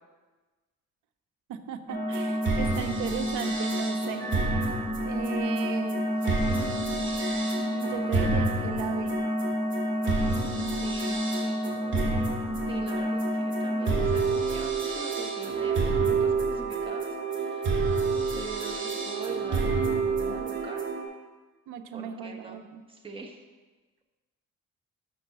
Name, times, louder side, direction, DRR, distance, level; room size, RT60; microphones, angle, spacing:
voice 1, 1.5-4.3 5.1-6.1 7.6-9.2 21.7-22.8, right 8 dB, 90° right, 10 dB, 0.7 m, -37 dB
sound 1, 1.9-21.0, right 2 dB, 40° right, 1.9 m, -28 dB
voice 2, 10.5-11.7 12.7-18.1 18.3-20.9 21.9-22.5 22.9-23.4, right 3 dB, 15° right, 1 dB, 1.2 m, -43 dB
6.6 x 6.1 x 6.5 m, 1.3 s
cardioid pair, 90°, 30 cm